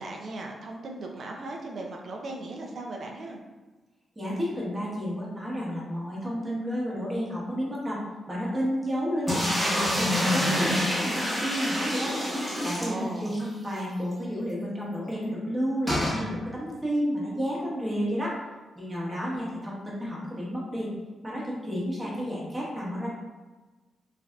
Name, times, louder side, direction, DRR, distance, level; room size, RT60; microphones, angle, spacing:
voice 1, 0.0-3.4 12.8-13.5, right 2 dB, 60° right, 1 dB, 0.4 m, -37 dB
voice 2, 4.2-12.2 12.6-18.4 18.7-20.9 21.2-23.1, equal, 20° right, -5 dB, 1.0 m, -31 dB
sound 1, 9.3-13.5 13.8-13.9 14.1-14.2 15.9-16.2, equal, ahead, 1.1 m, -27 dB
3.2 x 2.4 x 2.2 m, 1.2 s
cardioid pair, 95°, 0 cm